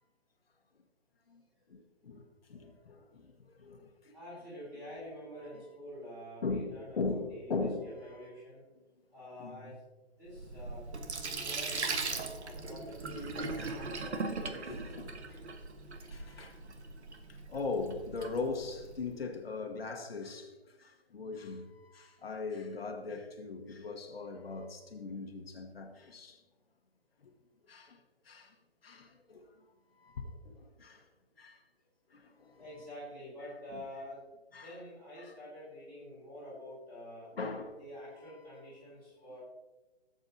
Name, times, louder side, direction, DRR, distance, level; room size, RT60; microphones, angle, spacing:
voice 1, 1.7-3.3 3.6-4.1 6.4-8.2 9.4-9.7 11.3-11.5 13.1-13.9 14.6-15.4 16.1-16.6 17.3-26.4 27.7-28.0 28.2-28.5 28.8-29.5 30.0-31.1 31.4-31.6 32.1-32.6 33.7-33.8 34.5-34.8 35.2-35.3 37.4-37.8, left 3 dB, 60° left, 1.3 m, -40 dB
voice 2, 4.1-7.6 7.9-8.6 9.1-9.9 10.2-10.8 11.4-12.0 12.4-14.9 32.6-34.2 34.6-37.3 37.8-39.4, left 1 dB, 10° right, 3.1 m, -47 dB
Sink (filling or washing), 10.3-19.1, right 3 dB, 80° right, 1.4 m, -39 dB
16.0 x 8.0 x 2.7 m
hypercardioid pair, 175°, 33 cm